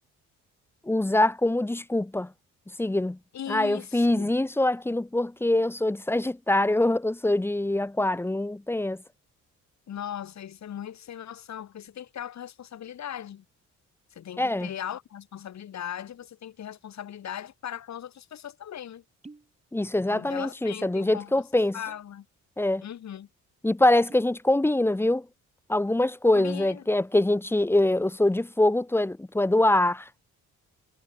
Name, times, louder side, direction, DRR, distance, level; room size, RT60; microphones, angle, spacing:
voice 1, 0.8-2.3 2.8-3.2 3.5-9.0 14.4-14.7 19.7-21.8 22.6-22.8 23.6-25.3 25.7-30.1, left 1 dB, 10° left, 0.8 m, -24 dB
voice 2, 3.3-4.3 9.9-13.4 14.1-19.0 20.1-21.3 21.7-22.3 22.8-23.3 26.3-26.8, left 10 dB, 65° left, 6.0 m, -38 dB
sound 1, 18.2-18.3 19.0-19.6 19.8-20.5 20.8-20.9 21.6-22.1 22.6-22.7 23.0-23.2 23.8-24.4 24.8-25.2, right 3 dB, 20° right, 7.8 m, -52 dB
cardioid pair, 90°, 30 cm